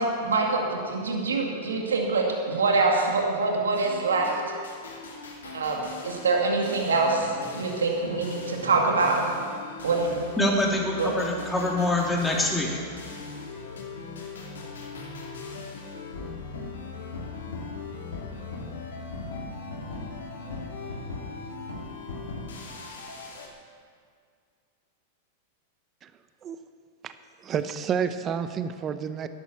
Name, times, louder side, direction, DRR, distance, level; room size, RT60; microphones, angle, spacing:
voice 1, 0.0-4.3 5.4-9.2 9.8-10.1 11.0-11.1, right 3 dB, 85° right, 0 dB, 2.1 m, -25 dB
sound 1, 3.7-23.5, left 3 dB, 80° left, 2.7 m, -39 dB
voice 2, 10.4-12.8, left 1 dB, 5° left, -2 dB, 3.0 m, -25 dB
voice 3, 27.4-29.3, right 7 dB, 30° right, 11 dB, 0.7 m, -29 dB
11.5 x 11.0 x 7.3 m, 2.1 s
hypercardioid pair, 100°, 0 cm